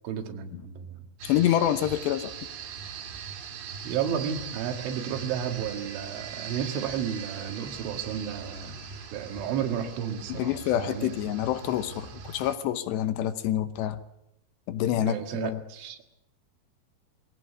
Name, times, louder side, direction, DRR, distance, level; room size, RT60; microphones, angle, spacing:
voice 1, 0.0-1.0 3.8-8.9 9.1-11.1 14.8-16.1, right 8 dB, 90° right, 5 dB, 4.4 m, -32 dB
voice 2, 1.2-2.3 10.3-14.0 14.7-15.6, left 12 dB, 75° left, 11 dB, 2.9 m, -27 dB
sound 1, 1.2-12.6, right 6 dB, 70° right, 4.3 m, -41 dB
22.5 x 17.0 x 8.3 m, 0.85 s
omnidirectional pair, 5.3 m